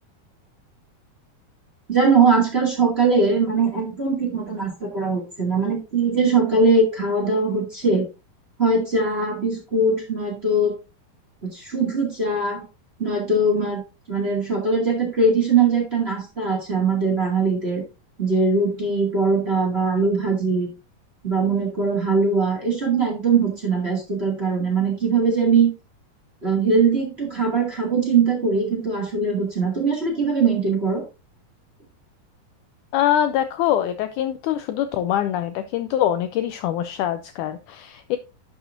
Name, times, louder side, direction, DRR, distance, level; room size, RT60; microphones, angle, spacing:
voice 1, 1.9-8.0 8.6-10.7 11.4-12.7 13.0-13.8 14.1-17.8 18.2-20.7 21.2-25.7 26.4-31.0, right 4 dB, 20° right, -1 dB, 1.9 m, -21 dB
voice 2, 32.9-38.2, left 11 dB, 90° left, 10 dB, 1.7 m, -24 dB
11.0 x 6.4 x 2.6 m, 0.27 s
omnidirectional pair, 4.2 m